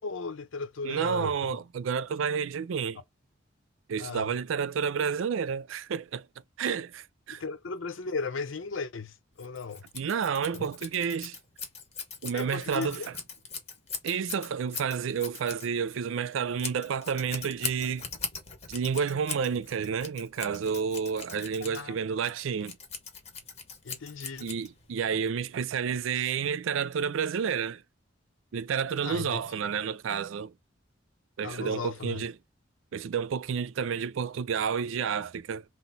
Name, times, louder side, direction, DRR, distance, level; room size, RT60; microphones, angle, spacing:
voice 1, 0.0-1.6 4.0-4.3 7.3-9.9 10.5-10.7 12.3-13.1 21.6-22.0 23.8-24.5 29.0-29.5 31.4-32.3, left 4 dB, 75° left, 0.7 m, -36 dB
voice 2, 0.8-3.0 3.9-6.3 6.6-7.4 9.9-11.4 12.2-13.0 14.0-18.1 18.7-22.8 24.4-27.8 28.5-30.5 31.4-32.3 32.9-35.6, right 6 dB, 75° right, 0.4 m, -30 dB
Scissors, 9.4-25.0, left 5 dB, 30° left, 1.2 m, -41 dB
6.0 x 2.0 x 4.0 m
head